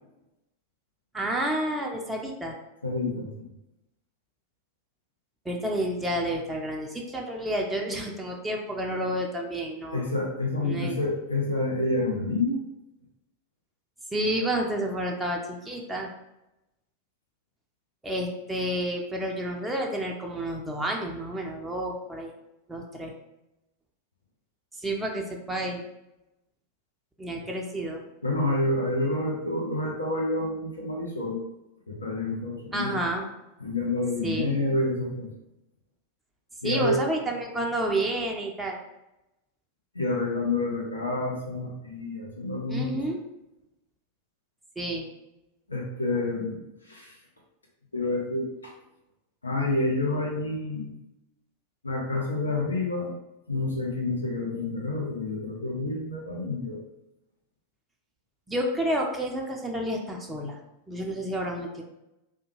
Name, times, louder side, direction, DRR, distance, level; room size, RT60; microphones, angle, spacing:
voice 1, 1.1-2.6 5.5-10.1 10.6-11.0 14.1-16.1 18.0-22.3 22.7-23.1 24.8-25.8 27.2-28.0 32.7-33.2 34.2-34.5 36.6-38.8 42.7-43.2 44.8-45.1 58.5-60.6 60.9-61.8, right 1 dB, 10° right, -1 dB, 0.4 m, -30 dB
voice 2, 2.8-3.4 9.9-12.6 28.2-31.4 31.9-33.0 33.6-35.3 36.6-37.0 39.9-43.0 45.7-46.6 46.9-47.1 47.9-48.7 49.4-50.9 51.8-53.1 53.5-56.8, left 2 dB, 75° left, -2 dB, 0.6 m, -28 dB
3.3 x 2.2 x 3.1 m, 0.92 s
figure-of-eight pair, 90°, 0 cm